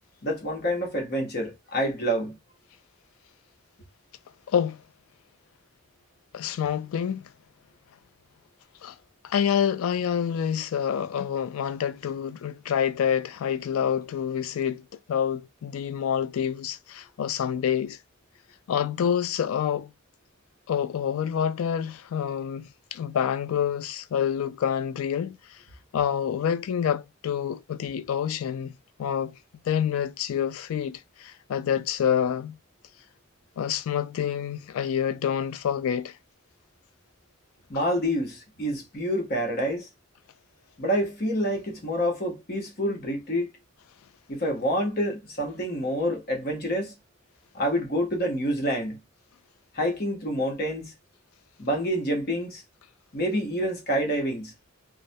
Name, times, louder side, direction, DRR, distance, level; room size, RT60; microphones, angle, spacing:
voice 1, 0.2-2.4 37.7-39.9 40.8-43.5 44.3-46.9 47.5-49.0 49.7-50.9 51.6-52.6 53.1-54.5, equal, 45° left, 0.9 m, -27 dB
voice 2, 4.5-4.8 6.3-7.3 8.8-8.9 9.2-14.8 15.1-18.0 18.7-19.9 20.7-25.4 25.9-29.4 29.7-32.6 33.6-36.1, left 8 dB, 75° left, 0.3 m, -27 dB
2.2 x 2.1 x 2.6 m
head